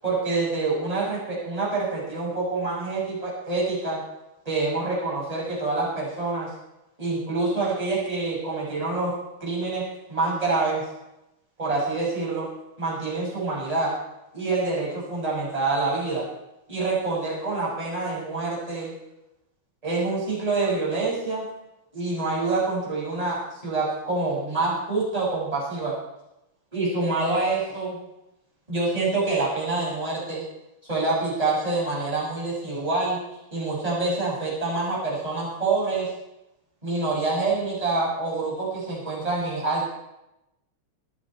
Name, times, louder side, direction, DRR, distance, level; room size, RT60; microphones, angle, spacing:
voice 1, 0.0-4.0 4.4-6.5 7.0-9.1 9.4-9.8 10.1-10.8 11.6-12.5 12.8-13.9 14.3-16.3 16.7-18.9 19.8-21.5 21.9-25.9 26.7-28.0 28.7-30.4 30.9-33.2 33.5-36.1 36.8-39.9, right 3 dB, 10° right, -6 dB, 6.2 m, -26 dB
24.5 x 9.7 x 4.5 m, 0.91 s
omnidirectional pair, 3.4 m